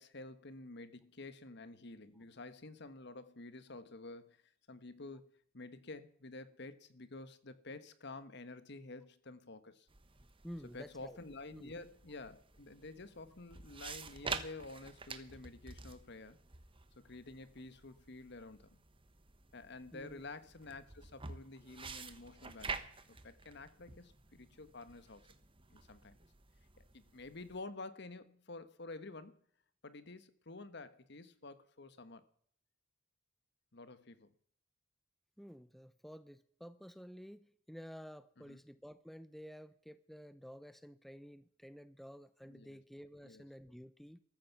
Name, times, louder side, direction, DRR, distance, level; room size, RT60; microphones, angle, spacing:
voice 1, 0.0-5.2 5.5-9.9 10.7-16.4 17.0-18.8 19.5-22.8 23.1-25.3 25.7-26.2 26.8-29.4 29.8-32.2 33.7-34.3 38.4-38.6 42.4-42.8 43.2-43.4, left 3 dB, 60° left, 1.3 m, -50 dB
sound 1, 9.9-27.6, right 4 dB, 25° right, 1.2 m, -49 dB
voice 2, 10.4-11.2 11.5-11.7 19.9-20.3 35.4-44.2, equal, ahead, 0.6 m, -52 dB
15.0 x 14.0 x 5.9 m
head